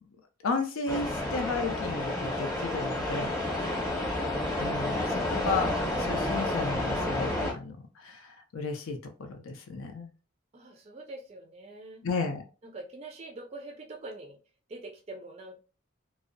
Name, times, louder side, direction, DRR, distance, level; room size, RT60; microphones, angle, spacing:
voice 1, 0.4-3.3 4.6-10.1 12.0-12.4, left 3 dB, 85° left, 5 dB, 0.5 m, -34 dB
Rompeolas en Baiona, 0.9-7.5, left 1 dB, 20° left, 0.7 m, -30 dB
voice 2, 3.6-4.0 10.5-12.0 12.6-14.4 14.7-15.6, right 2 dB, 30° right, 3 dB, 0.3 m, -44 dB
2.6 x 2.0 x 2.5 m, 0.34 s
head